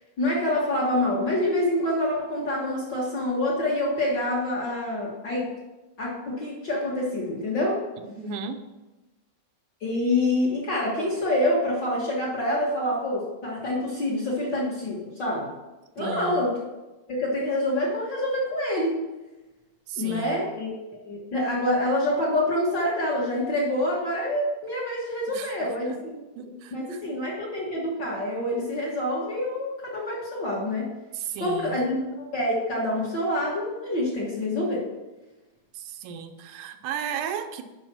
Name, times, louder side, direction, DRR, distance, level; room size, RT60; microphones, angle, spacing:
voice 1, 0.2-5.5 6.0-7.8 9.8-15.5 15.9-16.5 17.1-19.0 20.0-20.7 21.0-26.2 26.5-30.9 31.4-34.9, left 1 dB, 50° left, -5 dB, 1.4 m, -26 dB
voice 2, 8.2-8.6 16.0-16.4 19.9-20.4 25.3-26.0 26.4-27.0 31.1-31.8 35.7-37.6, right 6 dB, 90° right, 7 dB, 2.1 m, -35 dB
6.0 x 5.5 x 6.0 m, 1.1 s
omnidirectional pair, 3.4 m